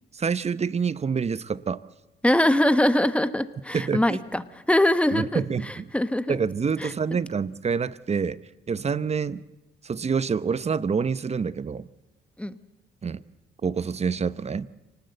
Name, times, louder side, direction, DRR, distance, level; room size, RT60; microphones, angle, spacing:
voice 1, 0.1-1.8 3.7-4.2 5.1-5.9 6.3-8.4 8.7-9.4 9.8-11.9 13.0-13.2 13.6-14.7, right 6 dB, 35° right, 16 dB, 0.9 m, -27 dB
voice 2, 2.2-6.4 6.8-6.9 12.4-12.6, left 1 dB, 5° left, 13 dB, 1.2 m, -23 dB
25.5 x 19.0 x 8.1 m, 1.0 s
cardioid pair, 90°, 20 cm